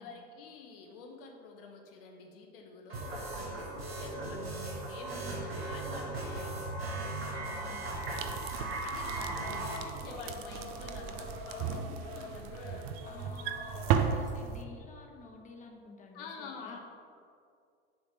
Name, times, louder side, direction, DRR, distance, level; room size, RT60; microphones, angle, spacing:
voice 1, 0.0-8.4 8.8-12.8 16.1-16.8, left 4 dB, 65° left, 2 dB, 0.9 m, -49 dB
sound 1, 2.9-9.8, right 2 dB, 85° right, 1.4 m, -37 dB
voice 2, 7.2-8.0 9.0-9.4 13.1-16.8, left 3 dB, 25° left, 1 dB, 1.1 m, -52 dB
sound 2, 7.9-14.6, right 8 dB, 45° right, 0.5 m, -35 dB
sound 3, 9.4-14.4, left 3 dB, 50° left, 1.3 m, -45 dB
7.0 x 3.3 x 5.8 m, 2.3 s
hypercardioid pair, 80°, 30 cm